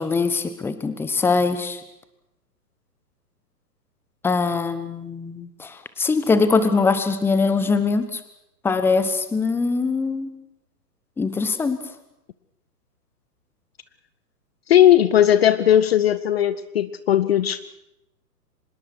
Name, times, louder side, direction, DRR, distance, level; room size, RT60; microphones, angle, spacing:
voice 1, 0.0-1.8 4.2-8.2 8.6-10.3 11.2-11.8, left 4 dB, 5° left, 11 dB, 1.1 m, -22 dB
voice 2, 14.7-17.6, left 11 dB, 40° left, 15 dB, 0.8 m, -17 dB
24.5 x 21.0 x 6.4 m, 0.84 s
figure-of-eight pair, 120°, 48 cm